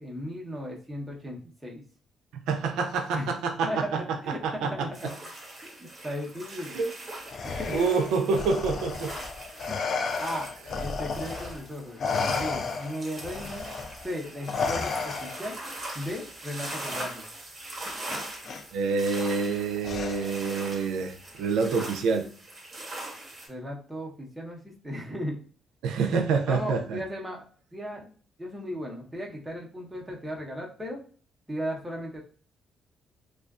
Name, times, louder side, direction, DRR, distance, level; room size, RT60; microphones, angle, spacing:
voice 1, 0.0-1.8 3.1-3.3 3.6-5.1 5.6-6.8 7.4-7.8 10.2-10.5 10.8-12.0 12.3-13.6 14.0-15.6 15.9-17.2 23.5-25.4 26.5-27.4 27.7-28.1 28.4-31.0 31.5-32.2, equal, 10° right, -2 dB, 0.8 m, -36 dB
voice 2, 2.5-3.8 4.4-4.9 6.7-6.9 7.7-9.1 18.7-22.3 25.8-27.0, right 4 dB, 90° right, 4 dB, 0.4 m, -27 dB
sound 1, 4.9-23.5, right 1 dB, 30° right, 1.0 m, -41 dB
Respiratory sounds, 7.3-11.6 12.0-15.6 16.9-17.1 18.1-18.6 19.8-20.5, left 4 dB, 55° left, 0.3 m, -33 dB
2.4 x 2.3 x 2.3 m, 0.42 s
cardioid pair, 90°, 0 cm